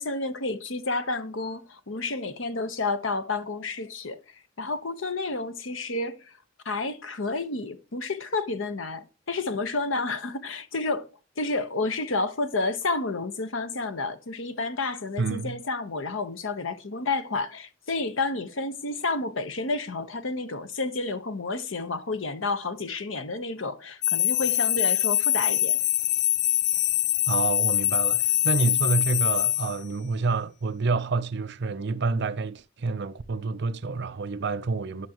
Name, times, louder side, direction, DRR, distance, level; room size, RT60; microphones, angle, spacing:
voice 1, 0.0-4.2 4.6-6.3 6.6-11.1 11.4-25.8, left 3 dB, 75° left, 1.0 m, -30 dB
voice 2, 15.2-15.6 27.3-35.1, right 4 dB, 60° right, 0.6 m, -28 dB
sound 1, 24.0-29.8, left 13 dB, 55° left, 0.3 m, -24 dB
11.0 x 6.2 x 3.0 m
head